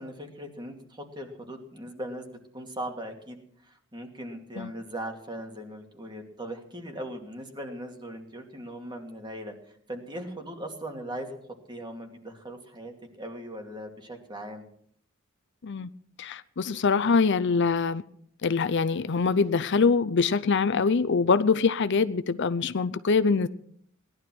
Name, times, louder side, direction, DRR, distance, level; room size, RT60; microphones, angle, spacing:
voice 1, 0.0-3.4 3.6-9.5 9.9-11.4 11.7-14.7, right 1 dB, 20° right, 2.5 m, -39 dB
voice 2, 16.2-18.0 18.4-23.5, left 4 dB, 60° left, 0.6 m, -24 dB
18.0 x 11.5 x 6.2 m
head